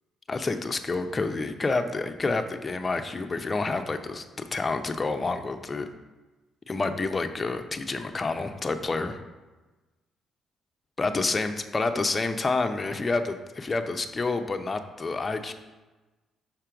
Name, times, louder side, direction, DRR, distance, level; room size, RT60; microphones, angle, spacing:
voice 1, 0.3-5.9 6.7-9.2 11.0-15.5, left 3 dB, 35° left, 7 dB, 0.7 m, -28 dB
5.8 x 4.4 x 5.0 m, 1.2 s
supercardioid pair, 60°, 0 cm